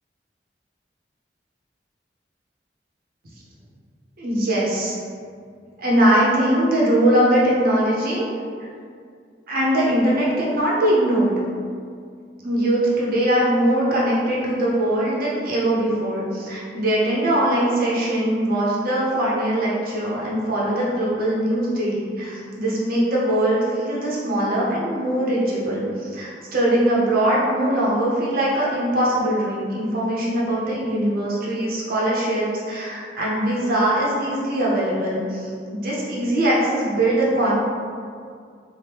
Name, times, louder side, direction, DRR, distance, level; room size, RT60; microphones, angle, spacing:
voice 1, 4.2-4.9 5.8-8.3 9.5-11.4 12.4-37.6, right 1 dB, 55° right, -6 dB, 0.7 m, -21 dB
2.9 x 2.1 x 3.4 m, 2.2 s
head